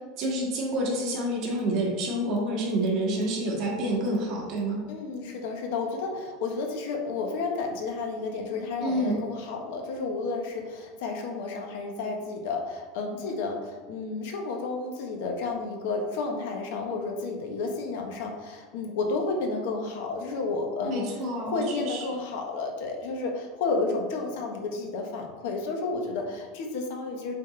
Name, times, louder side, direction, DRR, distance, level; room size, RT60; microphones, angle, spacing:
voice 1, 0.0-4.8 8.8-9.2 20.8-22.0, right 1 dB, 40° right, -3 dB, 1.9 m, -28 dB
voice 2, 4.9-21.1 21.4-27.4, left 3 dB, 70° left, 3 dB, 1.1 m, -31 dB
7.4 x 4.2 x 3.3 m, 1.4 s
supercardioid pair, 155°, 0 cm